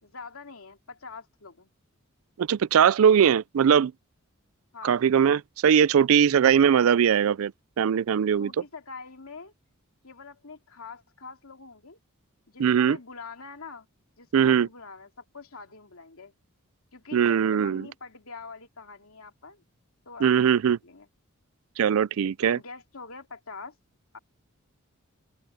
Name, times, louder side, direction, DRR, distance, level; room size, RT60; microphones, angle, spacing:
voice 1, 0.0-1.7 4.7-5.0 8.4-9.5 10.0-12.0 12.5-13.9 14.2-16.3 16.9-19.6 20.0-21.1 22.4-23.8 24.1-24.2, left 4 dB, 70° left, 2.9 m, -44 dB
voice 2, 2.4-3.9 4.8-7.5 7.8-8.5 12.6-13.0 14.3-14.7 17.1-17.8 20.2-20.8 21.8-22.6, right 8 dB, 70° right, 0.4 m, -20 dB
open air
head